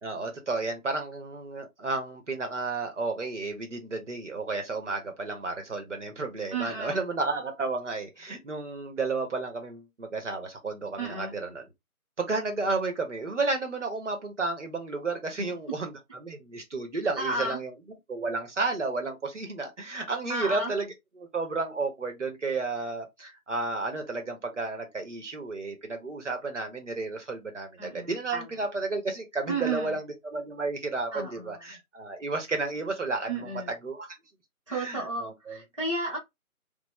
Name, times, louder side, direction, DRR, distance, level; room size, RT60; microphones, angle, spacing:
voice 1, 0.0-11.7 12.2-17.7 18.1-34.2 34.7-35.6, right 3 dB, 55° right, 0.8 m, -32 dB
voice 2, 6.5-7.1 11.0-11.3 15.4-15.6 17.2-17.6 20.3-20.7 27.8-28.5 29.5-30.0 31.1-31.6 33.3-33.7 34.7-36.2, right 2 dB, 20° right, 0.7 m, -33 dB
2.7 x 2.0 x 3.1 m
figure-of-eight pair, 160°, 44 cm